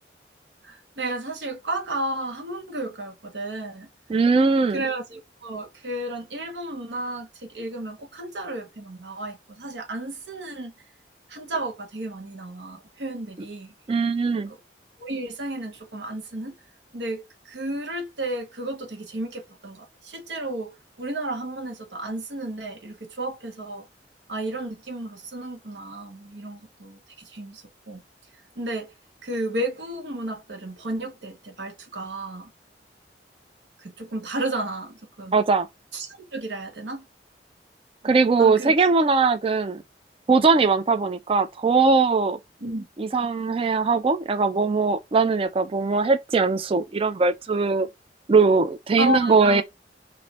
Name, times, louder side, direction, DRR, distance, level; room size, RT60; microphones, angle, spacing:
voice 1, 0.6-3.9 4.7-10.7 11.3-13.7 14.4-14.6 15.0-16.6 16.9-23.9 24.3-28.0 28.6-28.9 29.2-32.5 33.8-35.4 35.9-37.1 38.0-38.8 42.6-42.8 49.0-49.6, right 1 dB, 80° right, 1.0 m, -33 dB
voice 2, 4.1-4.8 13.9-14.5 35.3-35.7 38.0-39.8 40.3-42.4 43.0-47.9 48.3-49.6, right 4 dB, 30° right, 0.3 m, -20 dB
3.1 x 2.6 x 4.1 m
head